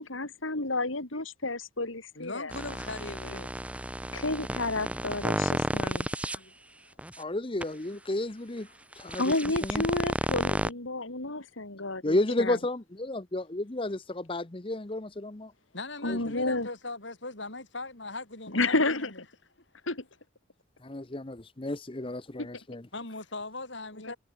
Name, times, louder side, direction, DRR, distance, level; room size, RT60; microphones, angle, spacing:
voice 1, 0.1-2.5 4.1-6.1 9.2-12.6 16.0-16.7 18.5-19.1 19.9-20.0 24.0-24.1, left 2 dB, 85° left, 3.7 m, -31 dB
voice 2, 2.2-3.5 6.3-6.8 8.9-9.1 15.7-19.1 22.9-24.2, left 2 dB, 65° left, 6.0 m, -40 dB
sound 1, 2.5-6.4 7.0-7.2 7.6-7.7 8.9-10.7, right 1 dB, 5° right, 2.9 m, -32 dB
voice 3, 7.2-8.7 9.0-9.3 9.6-9.8 12.0-15.5 16.1-16.5 20.8-22.9, left 2 dB, 25° left, 0.9 m, -32 dB
head